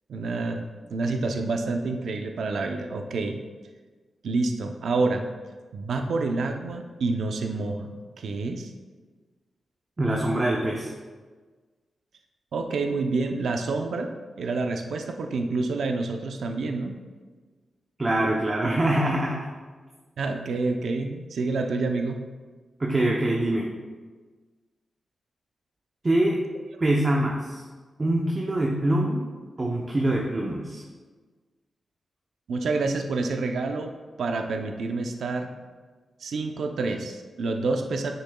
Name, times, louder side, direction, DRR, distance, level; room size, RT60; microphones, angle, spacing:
voice 1, 0.1-0.6 0.9-3.4 4.2-5.2 5.7-8.7 12.5-17.0 20.2-22.2 32.5-33.9 34.2-35.5 36.2-38.1, right 3 dB, 80° right, 4 dB, 0.6 m, -28 dB
voice 2, 10.0-10.9 18.0-19.5 22.8-23.7 26.0-26.4 26.8-27.6 28.0-29.2 29.6-30.8, right 1 dB, 25° right, -2 dB, 0.7 m, -24 dB
9.7 x 6.8 x 2.3 m, 1.4 s
wide cardioid pair, 130°, 0 cm